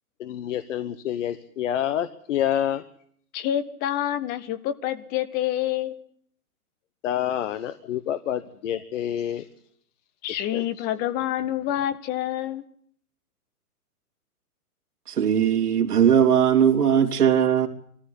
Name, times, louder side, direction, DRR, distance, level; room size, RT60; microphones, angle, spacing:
voice 1, 0.2-2.8 7.0-9.4 10.5-10.6, left 10 dB, 55° left, 12 dB, 1.2 m, -27 dB
voice 2, 3.3-6.0 10.2-12.6, left 11 dB, 20° left, 14 dB, 0.8 m, -27 dB
voice 3, 15.1-17.7, right 8 dB, 80° right, 4 dB, 3.0 m, -19 dB
21.0 x 14.5 x 9.9 m, 0.63 s
hypercardioid pair, 140°, 45 cm